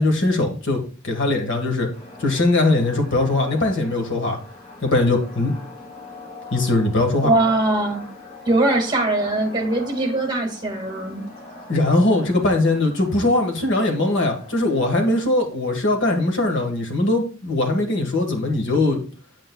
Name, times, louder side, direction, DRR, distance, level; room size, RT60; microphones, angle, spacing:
voice 1, 0.0-1.9 2.2-4.4 4.8-5.5 6.5-7.3 11.7-19.0, left 2 dB, 60° left, 4 dB, 1.6 m, -20 dB
sound 1, 1.9-15.2, left 2 dB, 45° left, 2.2 m, -42 dB
voice 2, 7.2-8.1 8.5-11.2, right 2 dB, 20° right, 1 dB, 1.8 m, -21 dB
8.7 x 8.2 x 2.3 m, 0.38 s
head